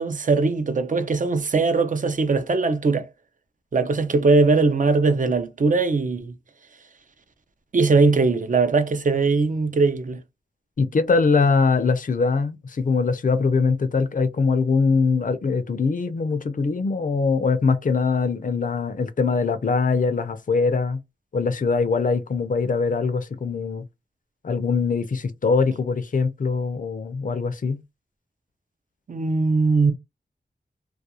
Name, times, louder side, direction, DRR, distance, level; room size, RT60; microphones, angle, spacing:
voice 1, 0.0-3.1 3.7-6.3 7.7-10.2 29.1-29.9, right 4 dB, 45° right, 0.5 m, -20 dB
voice 2, 10.8-21.0 21.3-23.8 24.4-27.8, left 4 dB, 50° left, 0.5 m, -22 dB
2.4 x 2.2 x 2.8 m
wide cardioid pair, 75°, 18 cm